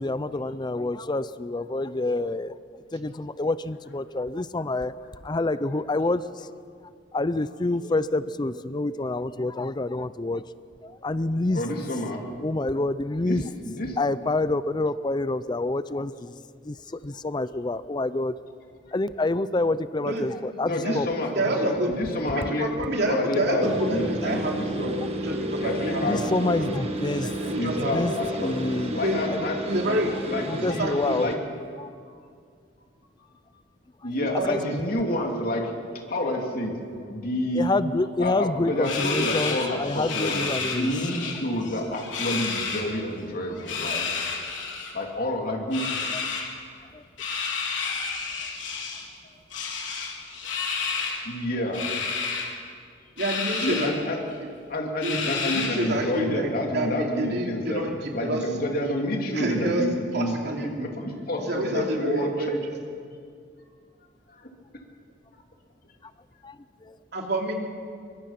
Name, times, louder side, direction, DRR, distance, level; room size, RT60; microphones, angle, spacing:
voice 1, 0.0-4.9 5.2-6.5 7.1-10.4 10.8-11.6 12.4-13.4 14.0-16.3 16.6-18.3 18.9-21.1 25.5-25.6 26.0-28.1 28.4-29.0 29.3-29.4 30.5-31.3 31.8-31.9 34.5-34.6 37.5-40.9 46.9-47.0 66.4-66.6 66.8-67.0, left 2 dB, 25° left, 15 dB, 0.5 m, -27 dB
voice 2, 11.5-12.3 13.2-14.0 20.6-24.9 25.6-26.7 27.6-30.0 30.3-30.9 31.1-31.4 31.8-32.2 34.0-35.7 36.1-36.7 37.1-37.7 38.2-40.5 40.7-44.1 44.9-45.9 51.2-51.8 53.6-54.2 54.7-57.8 58.1-60.5 60.8-62.3 64.3-64.5, left 1 dB, 50° left, 1 dB, 3.1 m, -29 dB
voice 3, 21.3-21.9 22.2-24.9 25.2-26.3 26.6-26.8 27.4-28.2 28.9-29.2 29.7-30.1 30.5-31.2 34.1-34.7 53.2-53.9 55.0-55.2 55.4-58.4 58.7-58.9 59.3-59.8 60.1-60.9 61.4-62.7 67.1-67.5, right 1 dB, 60° right, 1 dB, 3.0 m, -28 dB
sound 1, 23.6-31.4, right 1 dB, 35° right, 1.8 m, -32 dB
sound 2, 38.8-41.3 41.6-42.8 43.6-44.9 45.7-46.5 47.2-49.1 49.5-51.2 51.7-52.5 53.2-53.9 54.3-54.4 55.0-55.9, left 5 dB, 85° left, 4.0 m, -30 dB
23.0 x 22.0 x 5.9 m, 2.2 s
head